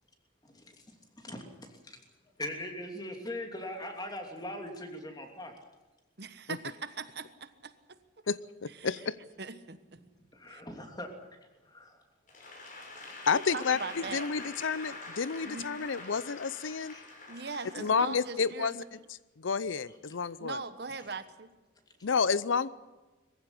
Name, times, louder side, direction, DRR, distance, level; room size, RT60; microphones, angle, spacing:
voice 1, 0.4-2.0 2.2-5.5 9.9-11.1 11.4-12.0 12.3-12.4 16.6-17.0 17.6-17.7 19.9-20.2 21.9-22.0, left 1 dB, 20° left, 4 dB, 2.9 m, -42 dB
voice 2, 6.2-8.0 8.7-8.9 9.4-10.0 10.5-10.6 13.3-14.3 15.3-15.7 17.3-18.8 20.4-21.5, right 4 dB, 55° right, 11 dB, 1.2 m, -40 dB
voice 3, 8.3-9.2 13.3-16.9 17.8-18.8 19.4-20.6 22.0-22.7, left 5 dB, 85° left, 18 dB, 0.6 m, -30 dB
Applause / Crowd, 12.3-18.5, left 2 dB, 45° left, 5.5 m, -45 dB
22.0 x 15.5 x 10.0 m, 1.2 s
head